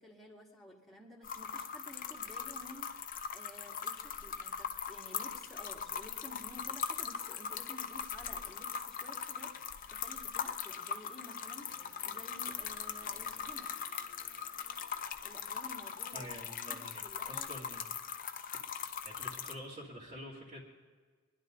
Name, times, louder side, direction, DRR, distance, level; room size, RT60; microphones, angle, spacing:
voice 1, 0.0-13.7 15.2-17.7, left 1 dB, ahead, -2 dB, 2.0 m, -53 dB
sound 1, 1.2-19.5, left 7 dB, 40° left, 0.8 m, -40 dB
sound 2, 11.5-16.0, right 1 dB, 75° right, 3.4 m, -62 dB
voice 2, 16.1-17.8 19.0-20.6, equal, 40° right, -8 dB, 2.6 m, -47 dB
24.0 x 11.0 x 4.0 m, 1.5 s
head